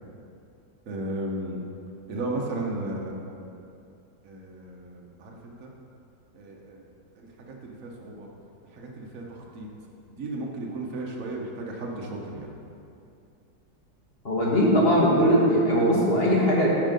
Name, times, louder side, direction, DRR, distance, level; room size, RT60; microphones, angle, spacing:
voice 1, 0.9-1.6 2.1-3.5 4.2-5.7 6.3-6.9 7.2-8.3 8.7-9.7 10.0-12.5, right 2 dB, 55° right, -2 dB, 1.3 m, -35 dB
voice 2, 14.2-16.7, equal, 35° left, -4 dB, 1.4 m, -20 dB
9.4 x 4.6 x 5.2 m, 2.6 s
omnidirectional pair, 1.9 m